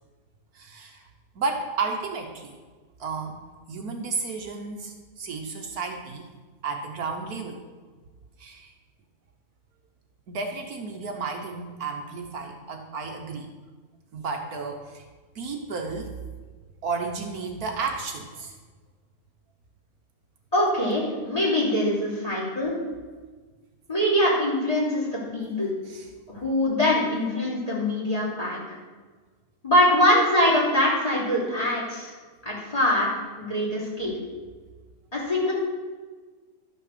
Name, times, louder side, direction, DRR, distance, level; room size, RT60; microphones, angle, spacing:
voice 1, 0.5-1.0 1.3-2.6 3.0-3.4 3.7-6.3 6.6-7.6 8.4-8.7 10.3-13.5 14.1-15.0 15.3-16.2 16.8-18.5 25.8-26.1, right 4 dB, 70° right, 3 dB, 1.5 m, -32 dB
voice 2, 20.5-22.7 23.9-25.7 26.3-28.8 29.6-32.1 32.4-33.1 33.4-34.1 35.1-35.5, left 1 dB, 20° left, -6 dB, 3.7 m, -23 dB
12.0 x 6.6 x 6.6 m, 1.4 s
omnidirectional pair, 1.7 m